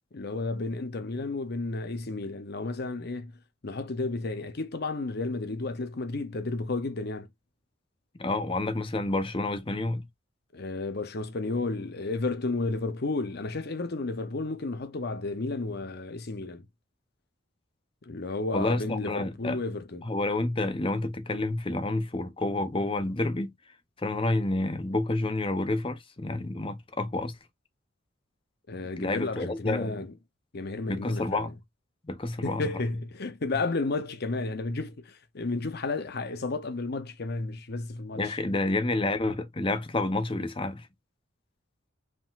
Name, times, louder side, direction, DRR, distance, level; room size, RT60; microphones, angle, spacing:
voice 1, 0.1-3.3 3.6-7.3 10.5-16.6 18.0-20.1 28.7-30.1 30.5-31.5 32.4-38.4, left 3 dB, 55° left, 0.8 m, -32 dB
voice 2, 8.2-10.1 18.5-19.6 20.0-23.5 24.0-27.4 29.0-30.0 30.9-31.5 32.0-32.7 38.1-40.9, left 2 dB, 25° left, 0.8 m, -29 dB
4.8 x 3.8 x 2.5 m
head